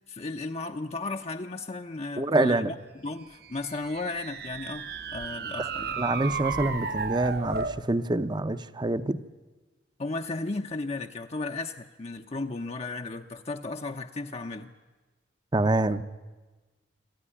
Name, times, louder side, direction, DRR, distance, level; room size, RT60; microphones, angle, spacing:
voice 1, 0.1-2.8 3.0-6.0 10.0-14.7, left 3 dB, 35° left, 5 dB, 0.7 m, -35 dB
voice 2, 2.2-2.7 5.6-5.7 6.0-9.2 15.5-16.0, right 2 dB, 25° right, 13 dB, 0.7 m, -26 dB
sound 1, 3.4-7.8, right 5 dB, 60° right, 1.0 m, -34 dB
26.0 x 13.5 x 9.9 m, 1.3 s
head